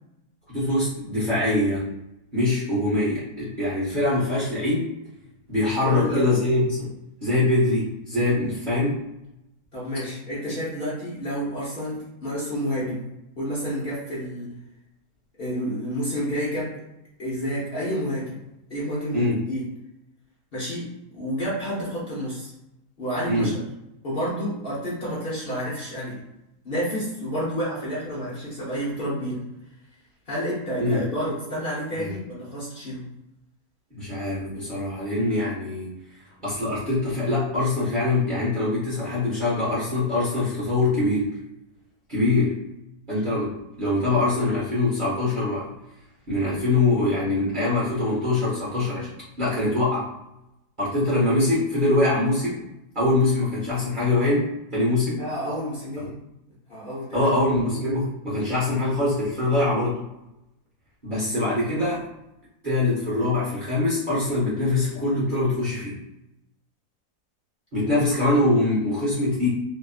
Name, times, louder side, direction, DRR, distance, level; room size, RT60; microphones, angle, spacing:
voice 1, 0.5-1.9 2.3-4.9 5.5-6.9 7.2-9.0 19.1-19.4 23.3-23.5 30.8-31.0 32.0-32.1 33.9-35.9 36.4-41.4 42.1-42.6 43.1-45.7 46.3-49.1 49.4-50.1 50.8-52.6 52.9-55.2 56.0-56.1 57.1-60.0 61.0-62.1 62.6-66.0 67.7-69.5, left 2 dB, 40° right, -8 dB, 0.8 m, -23 dB
voice 2, 5.8-6.3 9.7-13.0 13.4-14.5 15.4-16.8 17.2-18.4 18.7-19.6 20.5-22.5 23.0-23.6 24.0-26.2 26.6-29.4 30.3-33.1 55.2-56.2 56.7-57.3, equal, 45° left, -7 dB, 0.9 m, -29 dB
2.9 x 2.6 x 2.4 m, 0.88 s
omnidirectional pair, 1.7 m